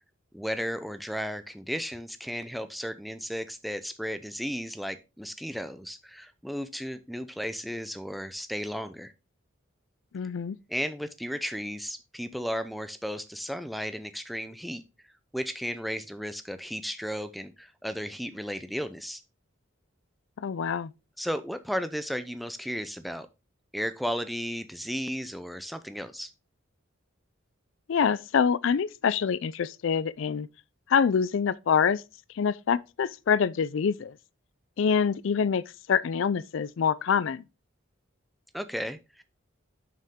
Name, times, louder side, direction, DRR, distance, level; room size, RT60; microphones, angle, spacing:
voice 1, 0.3-9.1 10.7-14.8 15.3-19.2 21.2-23.3 23.7-26.3 38.5-39.2, equal, ahead, 0.5 m, -34 dB
voice 2, 10.1-10.6 20.4-20.9 27.9-30.5 30.9-32.0 32.3-34.2 34.8-37.4, left 6 dB, 70° left, 0.4 m, -25 dB
6.8 x 6.3 x 3.6 m
head